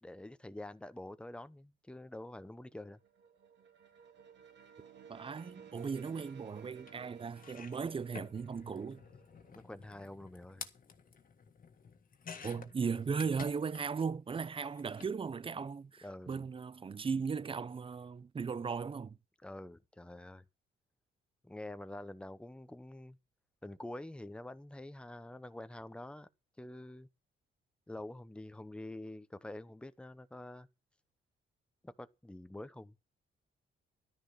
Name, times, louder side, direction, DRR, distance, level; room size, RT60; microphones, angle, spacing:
voice 1, 0.0-3.0 9.5-10.7 16.0-16.4 19.4-20.4 21.4-23.2 23.6-26.3 26.6-27.1 27.9-30.7 31.8-32.9, left 1 dB, 5° left, 0.9 m, -47 dB
sound 1, 2.5-10.2, right 7 dB, 65° right, 2.8 m, -57 dB
voice 2, 5.1-9.0 12.4-19.2, right 5 dB, 25° right, 0.6 m, -37 dB
sound 2, 6.9-7.0 7.3-14.1 14.3-15.1 16.2-16.3 16.6-16.7, left 6 dB, 45° left, 1.8 m, -52 dB
12.5 x 10.0 x 5.7 m
cardioid pair, 90°, 20 cm